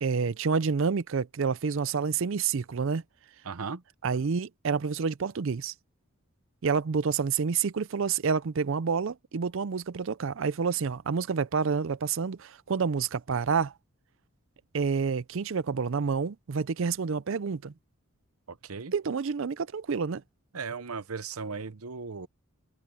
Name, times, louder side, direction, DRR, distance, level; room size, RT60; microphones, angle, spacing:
voice 1, 0.0-3.0 4.0-5.7 6.6-13.7 14.7-17.7 18.9-20.2, right 5 dB, 60° right, 0.5 m, -28 dB
voice 2, 3.4-3.8 18.5-18.9 20.5-22.3, right 5 dB, 80° right, 0.9 m, -37 dB
head